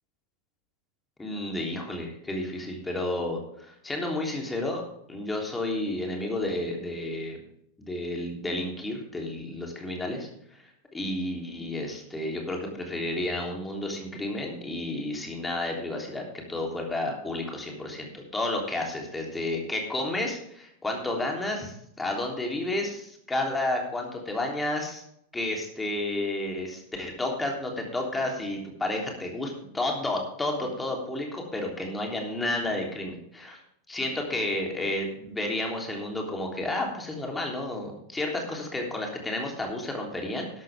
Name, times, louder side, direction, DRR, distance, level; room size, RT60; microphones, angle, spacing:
voice 1, 1.2-4.8 5.1-7.4 7.8-10.3 10.9-16.2 16.5-25.0 25.3-33.6 33.9-40.6, left 1 dB, 10° left, 1 dB, 3.3 m, -31 dB
13.0 x 12.0 x 3.6 m, 0.74 s
figure-of-eight pair, 90°, 0 cm